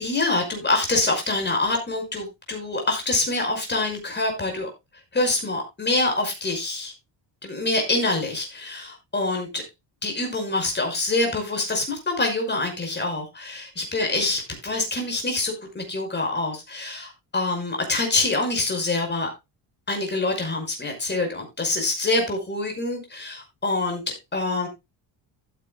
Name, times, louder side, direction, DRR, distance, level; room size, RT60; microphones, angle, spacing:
voice 1, 0.0-4.7 5.1-6.9 7.4-9.6 10.0-19.3 19.9-24.0 24.3-24.7, left 2 dB, 20° left, 3 dB, 5.6 m, -25 dB
15.0 x 9.4 x 2.2 m, 0.23 s
cardioid pair, 125°, 46 cm